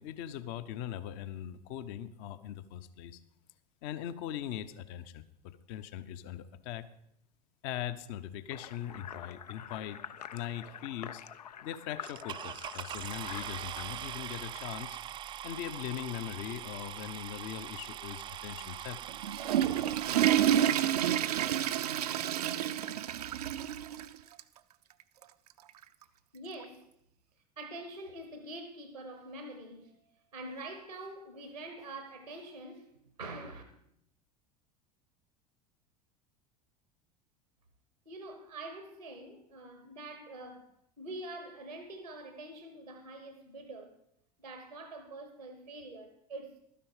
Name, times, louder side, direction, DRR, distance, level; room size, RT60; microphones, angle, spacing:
voice 1, 0.0-3.2 3.8-6.9 7.6-10.0 10.3-11.2 11.6-15.0 15.4-19.0, left 11 dB, 50° left, 0.8 m, -40 dB
sound 1, 8.5-13.9, left 8 dB, 75° left, 0.5 m, -46 dB
sound 2, 12.0-22.0 22.8-22.9 23.4-23.5 23.7-24.0, right 11 dB, 25° right, 0.3 m, -43 dB
Water / Toilet flush, 19.1-24.1 24.4-24.5 25.2-25.3 26.6-26.7, right 11 dB, 70° right, 0.6 m, -29 dB
voice 2, 26.3-26.9 27.6-30.0 30.3-32.9 33.2-33.6 38.0-40.7 41.0-44.0 44.4-46.6, right 2 dB, 90° right, 1.3 m, -45 dB
12.5 x 10.0 x 4.9 m
figure-of-eight pair, 75°, 21 cm